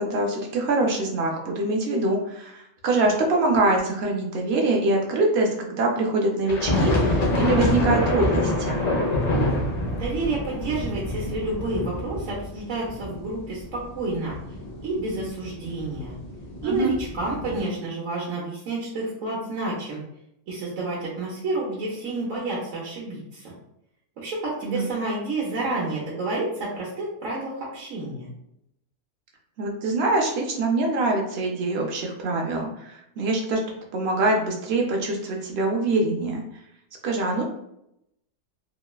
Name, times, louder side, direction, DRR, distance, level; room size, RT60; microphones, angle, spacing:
voice 1, 0.0-8.8 16.6-16.9 24.6-24.8 29.6-33.6 33.9-36.4 37.0-37.4, right 2 dB, 65° right, 0 dB, 0.7 m, -24 dB
sound 1, 6.5-17.6, left 2 dB, 55° left, 0.4 m, -26 dB
voice 2, 9.9-14.3 14.8-16.2 16.6-20.0 20.5-23.5 24.2-28.3, right 2 dB, 80° right, -5 dB, 1.1 m, -29 dB
3.0 x 2.0 x 2.2 m, 0.79 s
omnidirectional pair, 1.4 m